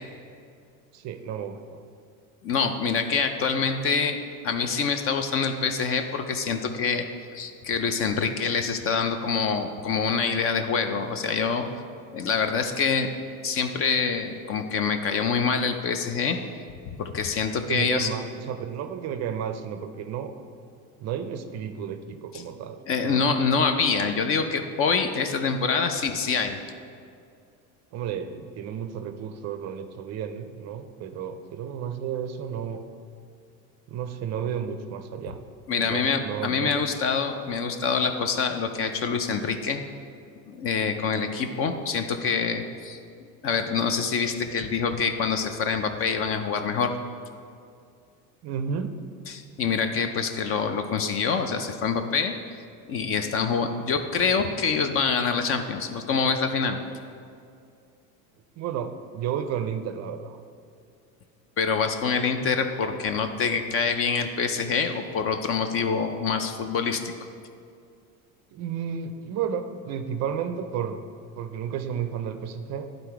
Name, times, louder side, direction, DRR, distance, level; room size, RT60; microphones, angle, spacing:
voice 1, 0.9-1.8 17.7-20.3 21.0-23.3 27.9-32.8 33.9-35.4 35.8-36.8 48.4-49.0 58.6-60.4 68.5-71.0 71.3-72.9, right 8 dB, 40° right, 8 dB, 0.5 m, -32 dB
voice 2, 2.4-4.2 4.4-7.0 7.3-11.7 12.1-13.1 13.4-16.4 17.0-18.1 22.3-22.4 22.9-26.6 35.7-39.8 40.5-43.0 43.4-46.9 49.3-52.3 52.9-56.8 61.6-67.0, left 5 dB, 35° left, 7 dB, 0.4 m, -25 dB
11.0 x 3.9 x 4.6 m, 2.3 s
cardioid pair, 135°, 41 cm